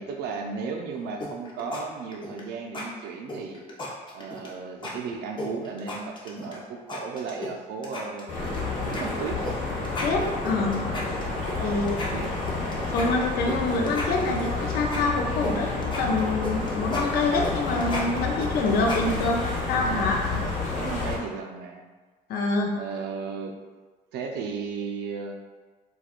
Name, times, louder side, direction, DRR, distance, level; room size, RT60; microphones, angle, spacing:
voice 1, 0.0-3.6 4.1-9.5 11.6-12.3 19.0-19.3 19.8-21.8 22.8-23.5 24.1-25.4, right 5 dB, 80° right, 2 dB, 0.4 m, -35 dB
sound 1, 1.2-1.8 2.1-2.4 2.7-2.9 3.3-4.5 4.8-4.9 5.4-6.6 6.9-7.5 7.8-8.6 8.9-9.0 9.4-9.6 9.8-11.6 11.9-13.6 13.9-15.5 15.8-19.4, left 2 dB, 30° left, 0.6 m, -34 dB
sound 2, 8.3-21.2, left 3 dB, 45° left, 1.2 m, -30 dB
voice 2, 10.0-10.9 11.6-11.9 12.8-19.4 19.7-20.2 22.3-22.7, left 3 dB, 65° left, 1 dB, 0.5 m, -26 dB
4.2 x 2.3 x 2.4 m, 1.4 s
cardioid pair, 110°, 17 cm